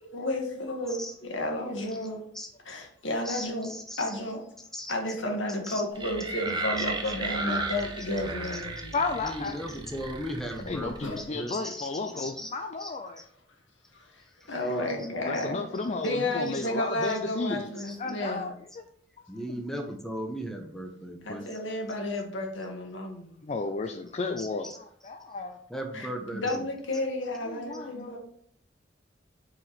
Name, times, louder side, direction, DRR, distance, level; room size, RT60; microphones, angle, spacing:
voice 1, 0.0-2.2 2.6-3.7 4.0-4.4 4.9-9.0 11.0-11.2 14.1-14.2 14.5-15.6 16.0-18.5 21.2-23.3 25.9-28.2, left 1 dB, 80° left, 1.7 m, -32 dB
voice 2, 3.3-4.0 4.7-4.9 5.7-5.8 9.2-11.9 12.2-12.5 12.8-12.9 14.7-14.8 17.8-18.0 19.3-21.4 24.4-24.8 25.7-26.6, equal, ahead, 0.9 m, -37 dB
sound 1, 6.0-11.2, right 3 dB, 25° right, 0.9 m, -35 dB
voice 3, 8.9-9.7 10.7-13.3 15.3-17.7 18.0-18.5 19.5-19.6 23.4-25.6 27.4-28.2, left 3 dB, 35° left, 0.4 m, -33 dB
4.9 x 4.9 x 5.7 m
head